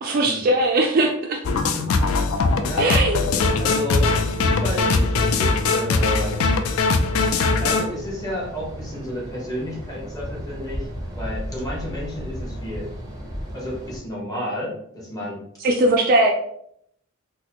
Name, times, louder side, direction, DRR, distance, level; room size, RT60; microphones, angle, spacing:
voice 1, 0.0-1.6 2.8-3.2 15.6-16.3, right 2 dB, 45° right, 2 dB, 0.3 m, -20 dB
sound 1, 1.4-7.9, left 3 dB, 75° left, 0.4 m, -21 dB
voice 2, 1.4-1.9 2.6-3.0 3.6-6.4 7.6-10.9 11.1-12.9 13.5-15.4, equal, 15° left, -4 dB, 1.0 m, -31 dB
sound 2, 7.0-14.0, equal, 15° right, 0.7 m, -35 dB
4.0 x 2.1 x 2.8 m, 0.71 s
head